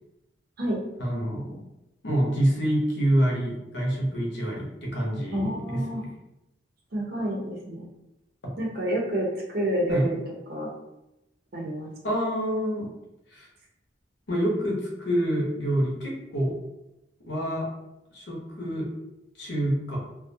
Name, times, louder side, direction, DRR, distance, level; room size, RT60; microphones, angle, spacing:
voice 1, 1.0-1.6 2.0-5.8 8.4-8.5 9.9-10.1 12.0-12.9 13.3-13.5 14.3-16.6 17.3-17.7 18.1-18.9 19.4-20.0, equal, 75° left, -2 dB, 0.7 m, -27 dB
voice 2, 5.3-6.0 6.9-7.9 8.6-10.2 10.5-10.7 11.5-11.9, equal, 60° right, -2 dB, 0.7 m, -28 dB
2.4 x 2.1 x 2.5 m, 0.91 s
head